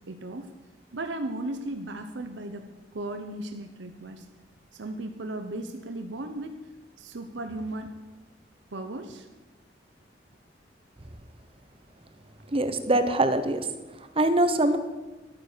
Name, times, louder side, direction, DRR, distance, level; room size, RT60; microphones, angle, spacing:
voice 1, 0.1-0.5 0.9-2.6 2.9-4.2 4.7-6.6 7.0-8.0 8.7-9.3, right 2 dB, 85° right, 6 dB, 0.9 m, -36 dB
voice 2, 12.5-13.7 14.2-14.8, right 1 dB, 30° right, 9 dB, 1.0 m, -23 dB
11.5 x 9.3 x 6.8 m, 1.2 s
head